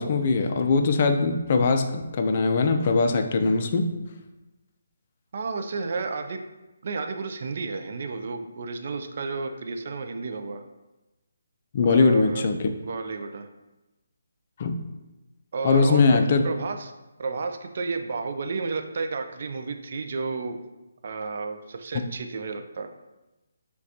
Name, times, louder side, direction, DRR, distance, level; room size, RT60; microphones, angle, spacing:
voice 1, 0.0-3.9 11.7-12.7 14.6-14.8 15.6-16.4, left 4 dB, 40° left, 5 dB, 0.3 m, -21 dB
voice 2, 5.3-6.4 6.8-10.6 11.8-12.4 12.8-13.5 15.5-16.9 17.2-20.6 21.0-22.9, right 4 dB, 50° right, 6 dB, 0.3 m, -32 dB
6.1 x 2.3 x 2.7 m, 1.0 s
figure-of-eight pair, 150°, 0 cm